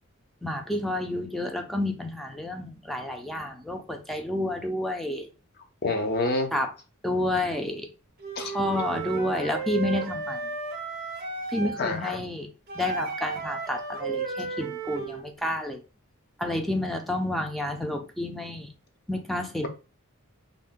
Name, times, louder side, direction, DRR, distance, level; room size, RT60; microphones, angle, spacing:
voice 1, 0.4-5.3 6.5-6.7 7.0-7.9 8.4-10.4 11.5-12.5 12.8-15.8 16.4-18.7 19.1-19.7, left 1 dB, ahead, 0.4 m, -30 dB
voice 2, 5.8-6.5 8.4-8.5 11.8-12.2, left 2 dB, 50° left, 0.6 m, -27 dB
Wind instrument woodwind instrument, 8.2-11.8 12.7-15.3, right 4 dB, 50° right, 0.5 m, -33 dB
2.6 x 2.1 x 3.5 m
head